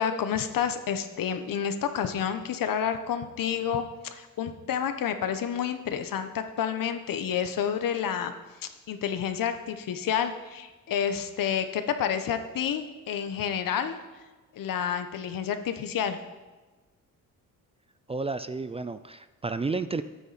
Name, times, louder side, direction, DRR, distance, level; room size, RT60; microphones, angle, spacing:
voice 1, 0.0-8.3 8.6-14.0 14.5-16.2, left 8 dB, 75° left, 8 dB, 1.3 m, -29 dB
voice 2, 18.1-20.0, right 3 dB, 20° right, 11 dB, 0.4 m, -31 dB
23.0 x 9.1 x 4.3 m, 1.2 s
cardioid pair, 140°, 34 cm